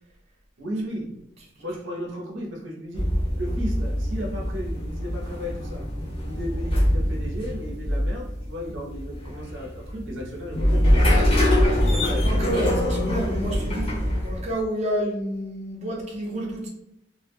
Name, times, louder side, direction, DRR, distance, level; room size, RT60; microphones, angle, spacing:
voice 1, 0.6-1.2 1.6-5.9 6.2-11.4 11.7-12.7, equal, 75° right, -1 dB, 0.6 m, -34 dB
voice 2, 1.4-1.8 11.9-12.0 12.2-16.7, right 1 dB, 35° right, -3 dB, 0.6 m, -30 dB
sound 1, 2.9-14.6, left 1 dB, 30° left, 0.7 m, -24 dB
2.2 x 2.0 x 3.3 m, 0.81 s
head